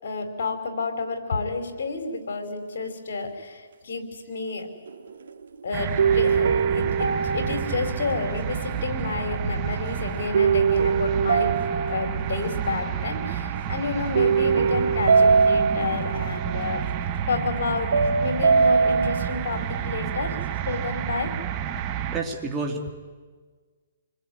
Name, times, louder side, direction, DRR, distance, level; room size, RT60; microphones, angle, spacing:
voice 1, 0.0-4.7 5.6-11.6 11.9-16.8 17.3-20.4 20.6-21.3, left 4 dB, 60° left, 6 dB, 5.1 m, -30 dB
sound 1, 4.9-5.5 6.0-8.6 10.3-12.9 13.2-13.6 14.1-16.9 17.9-19.4, right 5 dB, 75° right, 2.2 m, -22 dB
sound 2, 5.7-22.2, right 9 dB, 30° right, 1.4 m, -30 dB
voice 2, 22.1-22.9, right 3 dB, 15° right, 0 dB, 2.4 m, -29 dB
28.0 x 21.0 x 9.6 m, 1.5 s
hypercardioid pair, 145°, 0 cm